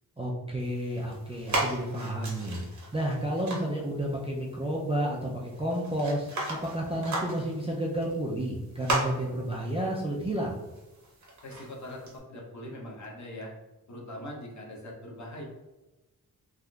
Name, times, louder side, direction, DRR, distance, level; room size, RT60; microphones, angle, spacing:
voice 1, 0.2-2.6 2.9-10.6, right 1 dB, 15° right, -4 dB, 0.3 m, -31 dB
sound 1, 0.6-12.2, right 2 dB, 50° right, 0.8 m, -37 dB
voice 2, 11.4-13.5 13.9-15.4, left 1 dB, 50° left, -2 dB, 0.8 m, -41 dB
3.5 x 2.5 x 2.3 m, 1.1 s
wide cardioid pair, 160°, 36 cm